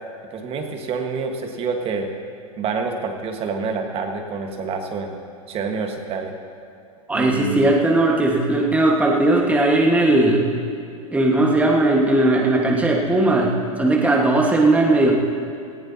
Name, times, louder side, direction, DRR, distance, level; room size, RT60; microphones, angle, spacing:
voice 1, 0.3-2.1 2.6-5.2 5.5-6.3 7.1-7.7, right 4 dB, 30° right, 4 dB, 1.6 m, -27 dB
voice 2, 7.1-10.5 11.1-15.1, right 2 dB, 10° right, -1 dB, 1.6 m, -18 dB
18.5 x 15.5 x 2.9 m, 2.5 s
hypercardioid pair, 120°, 19 cm